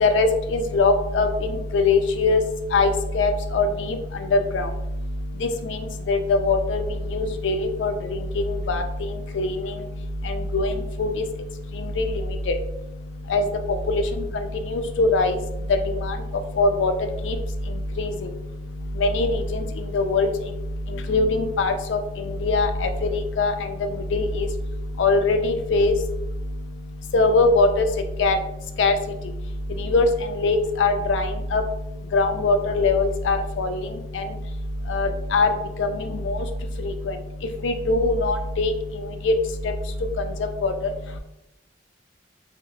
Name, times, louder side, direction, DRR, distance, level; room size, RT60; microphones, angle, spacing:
voice 1, 0.0-1.3 1.7-2.4 2.7-3.7 4.3-4.6 6.1-6.8 7.1-7.9 8.7-8.8 9.4-9.5 10.5-10.7 11.0-11.1 12.0-12.1 13.3-13.4 13.9-14.0 14.7-15.4 16.0-16.1 16.6-16.9 17.3-17.4 18.0-18.1 19.0-19.4 19.9-20.3 21.1-22.0 22.4-22.9 23.4-23.5 24.1-24.5 25.0-25.9 27.1-27.9 28.2-28.4 28.8-28.9 29.9-30.1 30.4-31.3 31.5-31.6 32.1-33.8 34.2-34.3 34.9-35.5 35.8-35.9 36.3-36.4 37.6-38.7 39.3-39.4 40.6-40.7, left 3 dB, 90° left, 7 dB, 0.4 m, -21 dB
3.4 x 2.8 x 2.3 m, 0.88 s
head